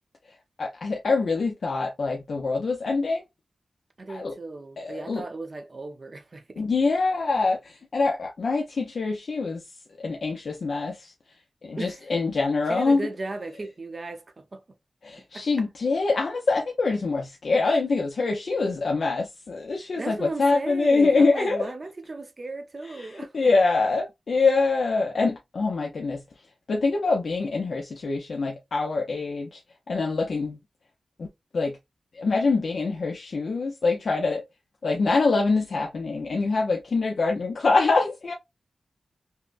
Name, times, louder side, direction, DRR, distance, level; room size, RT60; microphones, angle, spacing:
voice 1, 0.6-3.2 4.1-4.4 4.8-5.2 6.6-9.6 10.0-11.1 11.6-13.0 15.0-21.7 23.0-26.2 26.7-29.6 29.9-30.6 31.2-31.3 31.5-31.8 32.1-34.4 34.8-38.3, left 3 dB, 65° left, 0.6 m, -25 dB
voice 2, 4.0-6.6 11.8-12.1 12.7-14.6 15.3-15.7 19.8-23.5, right 3 dB, 40° right, 0.7 m, -36 dB
5.4 x 2.1 x 2.4 m
wide cardioid pair, 120°, 0 cm